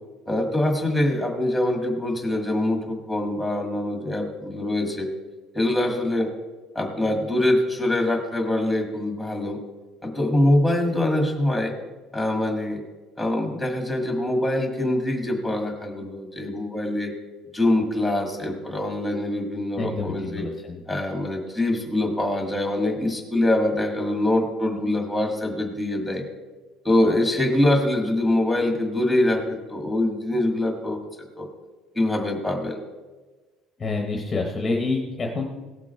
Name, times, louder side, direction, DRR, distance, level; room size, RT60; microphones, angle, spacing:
voice 1, 0.3-5.1 5.5-6.3 6.7-9.6 10.0-11.7 12.1-12.8 13.2-17.1 17.5-20.4 20.9-26.2 26.8-31.0 31.4-31.5 31.9-32.8, left 1 dB, ahead, 3 dB, 1.7 m, -24 dB
voice 2, 19.8-20.8 33.8-35.5, left 3 dB, 15° left, 1 dB, 1.0 m, -27 dB
17.5 x 6.1 x 4.5 m, 1.3 s
cardioid pair, 165°, 0 cm